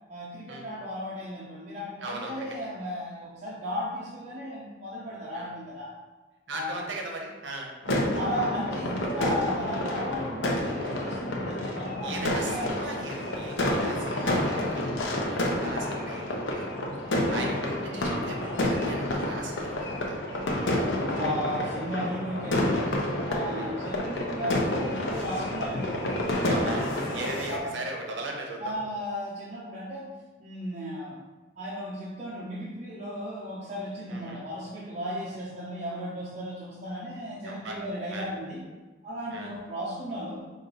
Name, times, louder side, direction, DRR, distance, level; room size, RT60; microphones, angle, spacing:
voice 1, 0.1-5.9 6.5-6.8 7.8-12.8 14.1-14.3 15.5-15.7 17.3-17.5 21.1-23.0 23.2-27.8 28.6-30.1 30.4-31.2 31.6-38.6 39.0-40.4, equal, 40° right, -7 dB, 0.7 m, -35 dB
voice 2, 2.0-2.5 5.3-5.5 6.5-7.7 12.0-16.7 17.0-20.2 23.5-23.7 26.5-28.7 34.1-34.4 37.4-37.8 38.1-38.3 39.3-39.5, right 2 dB, 85° right, 1 dB, 0.7 m, -38 dB
sound 1, 7.8-27.6, left 1 dB, 85° left, 0.7 m, -29 dB
5.0 x 2.6 x 3.9 m, 1.2 s
head